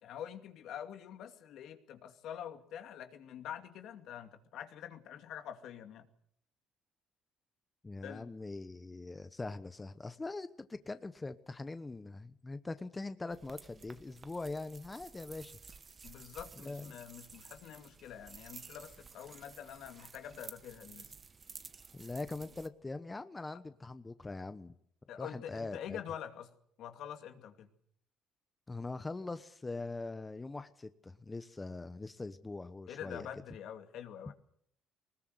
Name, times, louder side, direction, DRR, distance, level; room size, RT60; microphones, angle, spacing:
voice 1, 0.0-6.1 8.0-8.3 16.0-21.1 25.1-26.5 26.8-27.7 32.9-34.3, left 9 dB, 70° left, 7 dB, 2.5 m, -46 dB
voice 2, 7.8-15.6 16.6-16.9 21.9-24.7 25.2-26.0 28.7-33.3, left 3 dB, 20° left, 11 dB, 1.0 m, -42 dB
sound 1, 13.3-22.7, right 5 dB, 35° right, 1.3 m, -53 dB
20.5 x 20.0 x 8.0 m, 0.66 s
cardioid pair, 95°, 0 cm